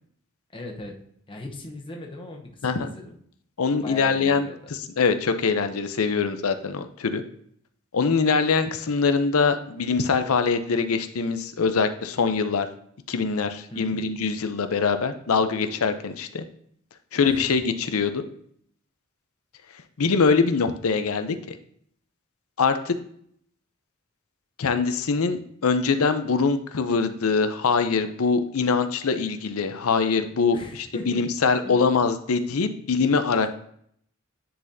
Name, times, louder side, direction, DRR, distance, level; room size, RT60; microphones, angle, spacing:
voice 1, 0.5-1.0 1.3-3.1 3.8-4.7 13.7-14.0 17.2-17.5 30.5-31.3 31.6-31.7, left 1 dB, 25° left, 1 dB, 0.9 m, -38 dB
voice 2, 3.6-4.5 5.0-7.2 7.9-12.7 13.1-16.5 17.1-18.2 20.0-21.4 22.6-23.0 24.6-33.5, left 5 dB, 80° left, 9 dB, 0.6 m, -23 dB
10.0 x 4.1 x 2.7 m, 0.66 s
head